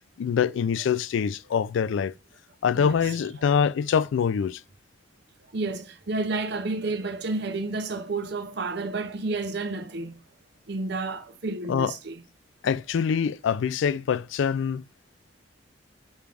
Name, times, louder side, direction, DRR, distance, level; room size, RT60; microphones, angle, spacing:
voice 1, 0.2-2.1 2.6-4.6 11.7-11.9 12.6-14.8, left 7 dB, 90° left, 0.3 m, -24 dB
voice 2, 5.5-10.1 10.7-12.2, right 3 dB, 65° right, 0.7 m, -30 dB
5.0 x 3.4 x 2.5 m
head